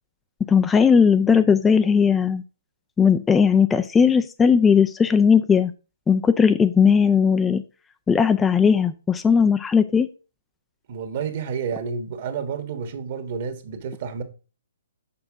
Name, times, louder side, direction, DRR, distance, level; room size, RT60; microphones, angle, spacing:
voice 1, 0.5-2.4 3.0-5.7 6.1-7.6 8.1-10.1, left 6 dB, 10° left, 0.4 m, -17 dB
voice 2, 10.9-14.2, right 6 dB, 50° right, 1.5 m, -30 dB
6.9 x 5.2 x 4.8 m
hypercardioid pair, 135°, 0 cm